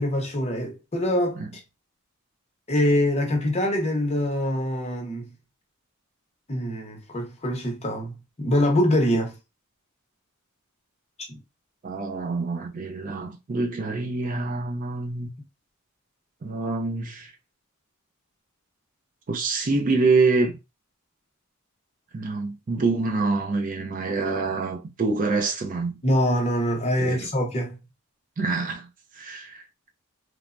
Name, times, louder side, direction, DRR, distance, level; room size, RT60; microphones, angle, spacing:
voice 1, 0.0-1.4 2.7-5.3 6.5-9.3 11.3-11.4 26.0-27.8, left 1 dB, 30° left, 0.8 m, -24 dB
voice 2, 11.8-15.3 16.4-17.3 19.3-20.5 22.1-26.0 27.0-27.3 28.4-28.9 29.2-29.6, right 3 dB, 40° right, 0.4 m, -26 dB
3.2 x 2.0 x 2.4 m
head